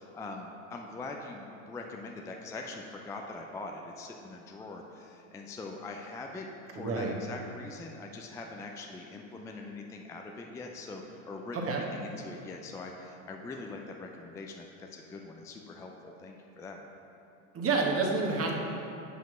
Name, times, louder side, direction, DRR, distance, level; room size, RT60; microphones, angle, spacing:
voice 1, 0.0-16.9, left 3 dB, 10° left, 2 dB, 0.3 m, -43 dB
voice 2, 6.7-7.1 11.5-11.8 17.5-18.5, right 3 dB, 30° right, 0 dB, 1.3 m, -28 dB
5.8 x 5.4 x 6.2 m, 2.8 s
hypercardioid pair, 95°, 43 cm